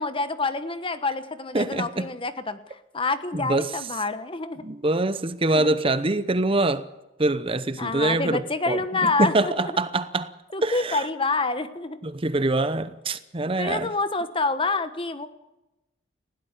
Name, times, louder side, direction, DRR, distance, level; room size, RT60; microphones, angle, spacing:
voice 1, 0.0-4.6 5.5-5.8 7.8-9.7 10.5-12.0 13.6-15.3, left 3 dB, 25° left, 1.2 m, -27 dB
voice 2, 1.5-2.1 3.3-3.7 4.6-6.9 7.2-10.3 10.6-11.0 12.0-13.9, right 2 dB, 25° right, 0.8 m, -24 dB
20.0 x 16.5 x 8.3 m
head